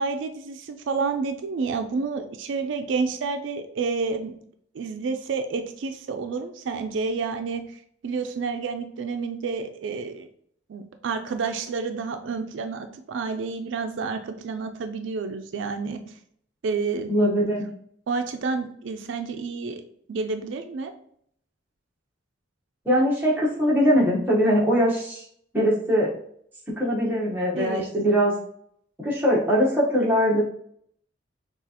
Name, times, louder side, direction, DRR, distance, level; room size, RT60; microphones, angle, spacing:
voice 1, 0.0-4.4 4.7-7.6 8.0-10.3 10.7-16.0 16.6-17.1 17.5-17.6 18.1-19.8 20.1-20.9 27.5-27.9, right 4 dB, 80° right, 7 dB, 0.4 m, -29 dB
voice 2, 17.1-17.7 22.8-25.2 25.5-26.1 26.8-28.3 29.0-30.4, equal, 10° right, -5 dB, 1.1 m, -21 dB
6.0 x 2.4 x 2.8 m, 0.66 s
head